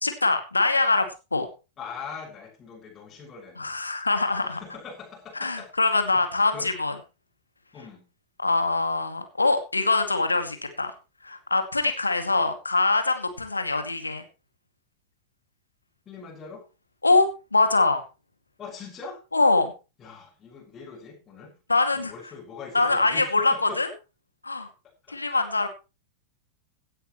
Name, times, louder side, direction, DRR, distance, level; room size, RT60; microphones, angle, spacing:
voice 1, 0.0-1.5 3.6-4.6 5.4-6.9 8.4-10.9 11.2-14.2 17.0-18.0 19.3-19.7 21.7-22.1 22.7-23.9 24.4-24.7 25.1-25.7, left 3 dB, 80° left, 7 dB, 2.3 m, -23 dB
voice 2, 1.8-3.7 4.3-6.2 6.5-6.7 7.7-8.0 13.4-13.5 16.1-16.7 18.6-19.2 20.0-21.5 21.9-23.8 25.1-25.7, left 5 dB, 25° left, -4 dB, 6.3 m, -42 dB
17.0 x 12.0 x 3.2 m, 0.29 s
figure-of-eight pair, 90°, 0 cm